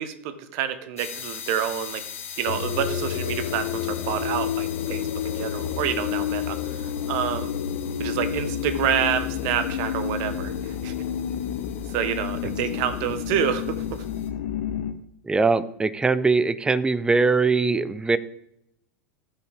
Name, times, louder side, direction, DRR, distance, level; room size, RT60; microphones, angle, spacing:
voice 1, 0.0-2.0 2.4-7.5 8.0-10.9 11.9-14.0, right 9 dB, 55° right, 10 dB, 1.2 m, -28 dB
sound 1, 1.0-14.3, left 7 dB, 80° left, 1.5 m, -42 dB
sound 2, 2.4-14.9, left 9 dB, 65° left, 1.1 m, -29 dB
voice 2, 15.2-18.2, right 4 dB, 10° right, 15 dB, 0.7 m, -21 dB
17.5 x 5.9 x 3.5 m, 0.76 s
hypercardioid pair, 90°, 7 cm